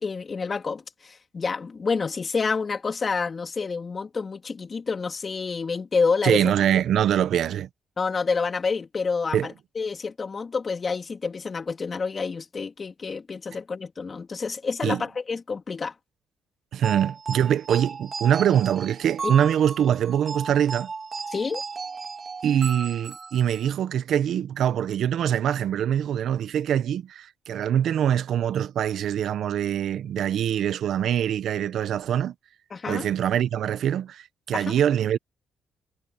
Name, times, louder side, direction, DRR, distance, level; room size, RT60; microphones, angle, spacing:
voice 1, 0.0-6.4 8.0-15.9 19.2-19.3 21.3-21.6 32.7-33.1 34.5-34.8, left 4 dB, 35° left, 3.3 m, -28 dB
voice 2, 6.2-7.7 9.3-9.5 14.8-15.0 16.7-20.9 22.4-32.3 32.9-35.2, right 9 dB, 70° right, 0.9 m, -24 dB
sound 1, 16.8-23.7, right 4 dB, 35° right, 2.1 m, -35 dB
cardioid pair, 90°, 0 cm